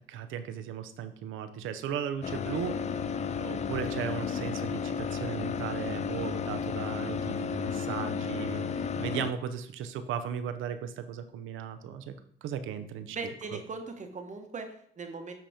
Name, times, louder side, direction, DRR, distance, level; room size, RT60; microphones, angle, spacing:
voice 1, 0.1-2.9 3.4-12.1 12.4-13.2, right 8 dB, 85° right, 9 dB, 0.6 m, -36 dB
sound 1, 2.2-9.3, left 6 dB, 35° left, 0.4 m, -33 dB
voice 2, 13.1-15.3, right 4 dB, 40° right, 5 dB, 1.0 m, -39 dB
7.7 x 2.9 x 4.9 m, 0.64 s
cardioid pair, 90°, 20 cm